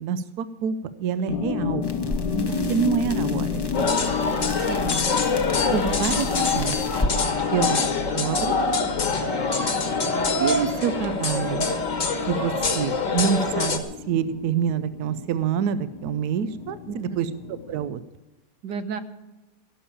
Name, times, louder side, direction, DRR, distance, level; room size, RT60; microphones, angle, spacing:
voice 1, 0.0-1.9 2.7-4.0 5.7-6.8 7.5-8.6 10.4-11.7 12.3-18.0, right 8 dB, 70° right, 13 dB, 1.1 m, -27 dB
sound 1, 1.3-17.9, left 7 dB, 90° left, 1.5 m, -31 dB
sound 2, 1.8-7.2, left 1 dB, 20° left, 0.8 m, -33 dB
voice 2, 2.3-2.8 4.5-5.0 16.9-17.3 18.6-19.0, right 6 dB, 85° right, 10 dB, 1.6 m, -33 dB
sound 3, 3.7-13.8, left 4 dB, 50° left, 1.7 m, -25 dB
16.5 x 7.0 x 8.6 m, 1.0 s
omnidirectional pair, 1.8 m